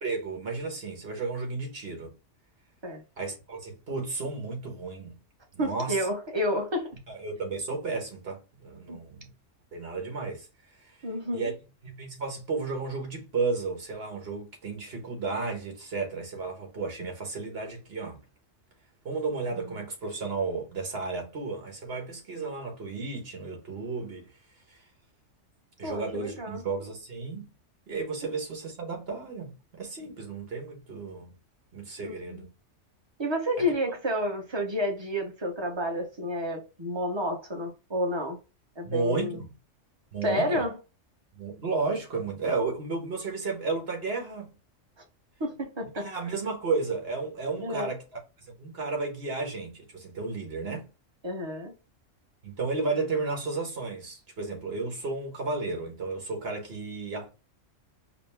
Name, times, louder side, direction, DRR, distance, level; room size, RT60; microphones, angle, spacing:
voice 1, 0.0-2.1 3.2-5.2 5.5-6.0 7.1-9.3 9.7-10.5 10.8-11.0 11.3-11.5 11.8-18.2 19.0-24.3 24.7-24.8 25.8-27.5 27.9-31.3 31.7-32.5 38.8-39.4 40.1-40.6 41.3-44.5 45.9-48.0 48.4-50.9 52.4-57.3, right 4 dB, 55° right, 1.4 m, -33 dB
voice 2, 5.6-7.0 8.9-9.0 11.0-11.5 25.8-26.6 32.0-32.5 33.2-38.4 38.8-39.4 40.2-40.8 45.4-46.1 47.6-47.9 51.2-51.7, equal, 25° right, 0.9 m, -30 dB
4.9 x 2.1 x 3.4 m
omnidirectional pair, 1.3 m